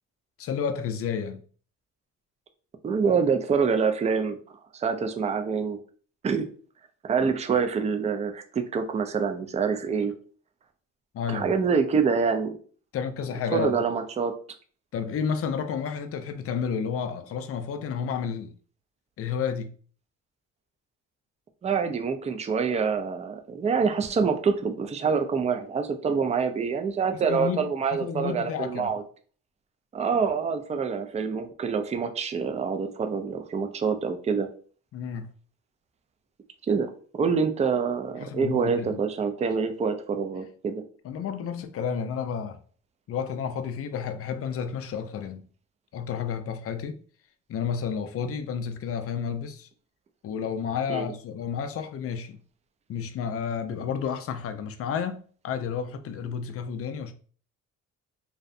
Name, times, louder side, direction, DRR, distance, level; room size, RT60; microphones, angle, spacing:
voice 1, 0.4-1.4 11.1-11.6 12.9-13.9 14.9-18.5 19.2-19.7 27.2-28.9 34.9-35.3 38.2-39.0 41.0-42.6 43.1-45.4 45.9-47.0 47.5-49.7 50.2-52.4 52.9-57.1, left 7 dB, 50° left, 0.4 m, -31 dB
voice 2, 2.8-4.4 4.7-5.8 6.2-6.5 7.0-10.1 11.3-12.6 13.5-14.3 21.6-29.0 29.9-34.5 36.7-40.8 50.9-51.0, right 5 dB, 25° right, 0.3 m, -26 dB
2.6 x 2.0 x 2.5 m
cardioid pair, 90°, 30 cm